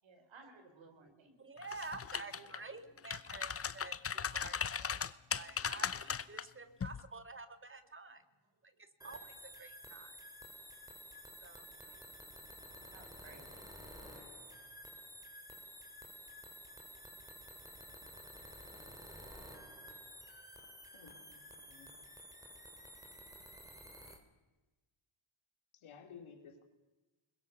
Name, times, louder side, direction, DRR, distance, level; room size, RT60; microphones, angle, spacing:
voice 1, 0.0-1.4 2.2-2.9 8.7-8.9 11.6-12.1 12.6-13.6, right 4 dB, 65° right, 6 dB, 4.5 m, -60 dB
voice 2, 1.4-8.2 8.6-10.1 11.4-11.7, right 3 dB, 25° right, 10 dB, 1.8 m, -50 dB
sound 1, 1.6-2.6 3.0-6.4 6.8-7.0, left 6 dB, 30° left, 0.8 m, -38 dB
sound 2, 9.0-24.2, equal, 5° right, 3.5 m, -52 dB
voice 3, 20.9-21.9 25.7-26.6, left 6 dB, 70° left, 5 dB, 3.4 m, -55 dB
23.0 x 21.0 x 6.9 m, 1.1 s
cardioid pair, 90°, 49 cm